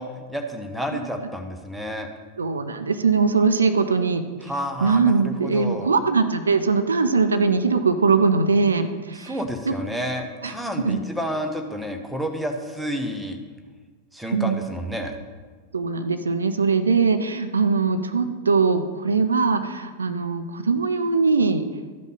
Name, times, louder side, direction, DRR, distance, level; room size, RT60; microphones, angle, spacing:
voice 1, 0.0-2.1 4.4-5.9 9.1-13.4 14.1-15.1, equal, 5° right, 4 dB, 1.0 m, -30 dB
voice 2, 2.4-4.2 4.8-9.4 9.7-9.8 10.4-11.0 14.3-14.7 15.7-21.7, right 4 dB, 75° right, 9 dB, 0.5 m, -21 dB
13.0 x 5.3 x 4.0 m, 1.4 s
figure-of-eight pair, 90°, 0 cm